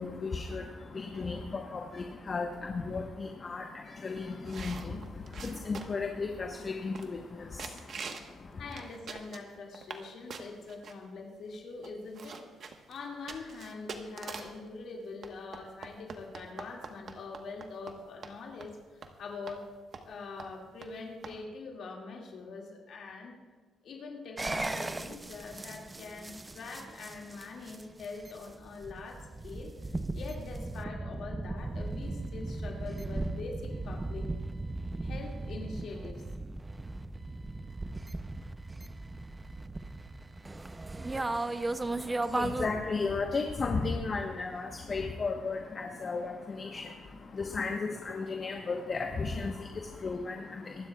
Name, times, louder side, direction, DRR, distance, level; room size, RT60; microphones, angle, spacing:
voice 1, 0.0-8.8 41.8-50.9, left 4 dB, 40° left, 3 dB, 1.1 m, -35 dB
sound 1, 4.5-6.1 6.6-6.7 6.9-7.3 7.6-8.3 8.7-10.0 10.3-10.9 11.5-11.6 11.8-14.6 15.2-18.0 18.2-18.3 18.6-18.7 19.0-19.1 19.5-19.6 19.9-20.1 20.4-20.5 20.8-20.9 21.2-21.4, right 5 dB, 55° right, 1.3 m, -44 dB
voice 2, 8.6-12.5 12.9-18.8 19.2-19.6 20.1-23.4 23.8-29.7 30.1-34.3 35.0-36.2, left 4 dB, 65° left, -1 dB, 2.2 m, -43 dB
sound 2, 24.4-42.7, right 2 dB, 20° right, 0.6 m, -37 dB
24.0 x 12.0 x 2.4 m, 1.4 s
cardioid pair, 90°, 0 cm